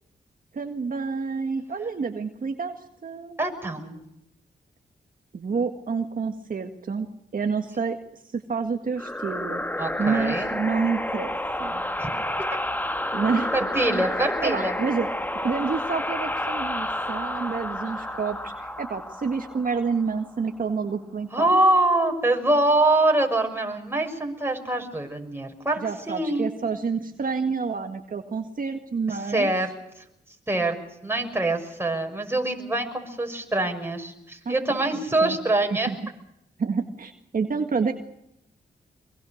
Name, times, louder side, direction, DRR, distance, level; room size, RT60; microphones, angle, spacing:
voice 1, 0.5-3.4 5.3-9.6 10.0-11.8 13.1-13.5 14.4-21.5 25.8-29.5 34.5-35.4 35.9-36.0 36.6-37.9, right 5 dB, 55° right, 5 dB, 1.8 m, -29 dB
voice 2, 3.4-4.0 9.8-10.6 12.0-12.1 13.5-14.7 21.3-25.8 26.1-26.5 29.1-29.7 30.5-30.7 31.0-35.9, right 2 dB, 15° right, 3 dB, 6.0 m, -24 dB
sound 1, 9.0-20.3, left 1 dB, 10° left, 1.4 m, -30 dB
24.0 x 23.5 x 6.5 m, 0.83 s
cardioid pair, 65°, 17 cm